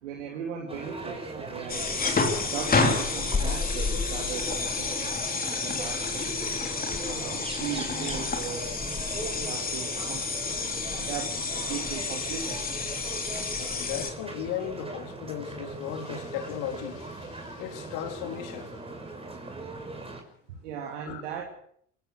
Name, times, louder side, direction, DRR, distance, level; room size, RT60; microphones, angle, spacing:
voice 1, 0.0-1.9 2.4-5.2 5.6-6.4 7.0-8.6 9.4-10.2 10.8-11.3 11.6-12.9 20.5-21.6, right 8 dB, 70° right, 3.2 m, -38 dB
sound 1, 0.7-20.2, right 2 dB, 15° right, 5.8 m, -40 dB
sound 2, 1.7-14.1, left 4 dB, 25° left, 3.9 m, -29 dB
voice 2, 13.6-18.7 21.1-21.2, left 9 dB, 60° left, 3.6 m, -36 dB
28.0 x 16.5 x 6.5 m
figure-of-eight pair, 65°, 37 cm